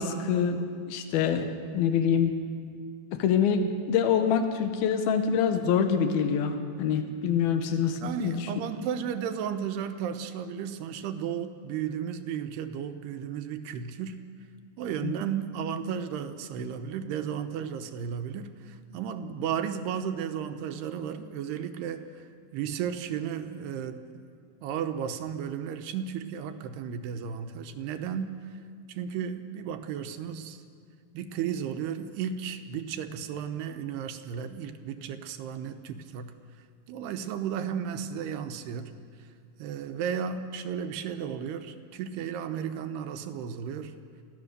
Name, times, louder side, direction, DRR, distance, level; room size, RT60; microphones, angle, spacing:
voice 1, 0.0-2.4 3.1-8.5 15.0-15.1, left 7 dB, 70° left, 7 dB, 3.1 m, -26 dB
voice 2, 8.0-14.2 14.8-22.3 22.5-24.0 24.6-28.3 28.9-30.6 31.1-36.3 36.9-38.9 39.6-43.9, right 8 dB, 80° right, 8 dB, 3.1 m, -34 dB
27.5 x 16.0 x 6.7 m, 2.2 s
omnidirectional pair, 4.6 m